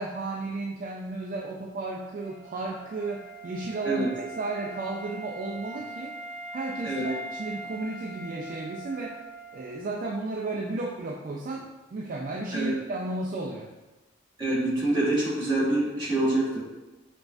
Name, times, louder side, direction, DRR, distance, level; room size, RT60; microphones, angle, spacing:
voice 1, 0.0-6.2 6.5-9.2 9.5-13.7, right 2 dB, 45° right, -1 dB, 0.3 m, -33 dB
Wind instrument woodwind instrument, 2.1-9.9, right 2 dB, 65° left, 1.0 m, -41 dB
voice 2, 14.4-16.6, right 1 dB, 25° right, -7 dB, 1.3 m, -26 dB
6.6 x 2.3 x 2.5 m, 1.1 s
head